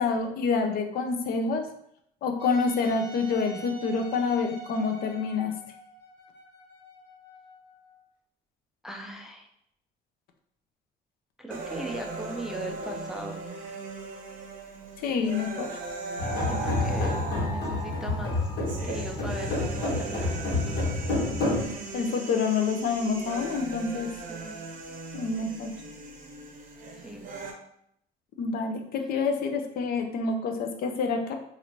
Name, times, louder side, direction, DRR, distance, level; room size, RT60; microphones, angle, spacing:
voice 1, 0.0-1.7 2.2-5.5 15.0-15.8 21.9-24.1 25.1-25.7 28.4-31.3, left 4 dB, 60° left, 5 dB, 0.5 m, -27 dB
Wind instrument woodwind instrument, 2.4-8.0, right 4 dB, 85° right, 0.9 m, -45 dB
voice 2, 8.8-9.5 11.4-13.4 16.3-18.4 18.8-20.8 24.3-24.7 27.0-27.3, right 1 dB, 5° right, 2 dB, 0.3 m, -39 dB
sound 1, 11.5-27.5, right 3 dB, 55° right, 0.7 m, -39 dB
sound 2, 16.2-21.7, left 2 dB, 80° left, 1.4 m, -28 dB
3.0 x 2.5 x 2.9 m, 0.73 s
cardioid pair, 110°, 17 cm